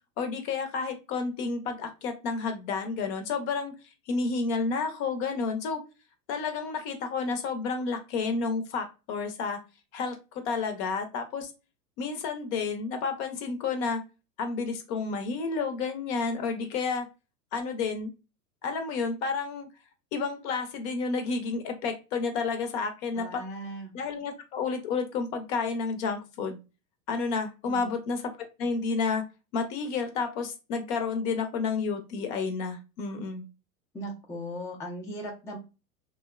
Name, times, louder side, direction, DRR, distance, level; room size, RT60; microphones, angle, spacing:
voice 1, 0.2-3.7 4.1-5.8 6.3-9.6 9.9-11.5 12.0-14.0 14.4-17.1 17.5-18.1 18.6-19.7 20.1-23.4 23.9-26.6 27.1-29.2 29.5-33.4, left 4 dB, 45° left, 7 dB, 0.7 m, -30 dB
voice 2, 23.1-23.9 27.6-27.9 33.9-35.6, equal, 5° left, -2 dB, 0.4 m, -38 dB
2.8 x 2.1 x 2.3 m, 0.29 s
hypercardioid pair, 105°, 47 cm